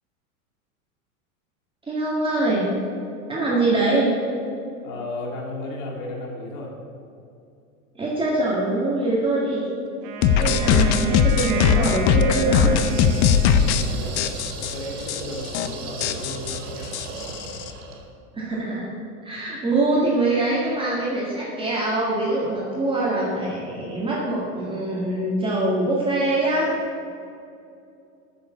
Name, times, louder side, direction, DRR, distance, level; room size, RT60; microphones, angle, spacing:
voice 1, 1.9-2.7 3.3-4.1 8.0-9.7 10.4-12.7 18.3-18.9 19.2-26.7, right 2 dB, 10° right, -6 dB, 1.7 m, -23 dB
voice 2, 4.8-6.8 13.3-16.9, left 2 dB, 60° left, -1 dB, 2.5 m, -35 dB
Wind instrument woodwind instrument, 10.0-14.2, right 3 dB, 50° right, 1.6 m, -34 dB
sound 1, 10.2-13.8 14.2-14.7 15.1-15.2 15.5-15.7 16.0-17.7, left 8 dB, 40° left, 0.7 m, -20 dB
sound 2, 12.7-18.1, right 3 dB, 75° right, 2.4 m, -36 dB
8.5 x 6.9 x 7.1 m, 2.6 s
supercardioid pair, 135°, 43 cm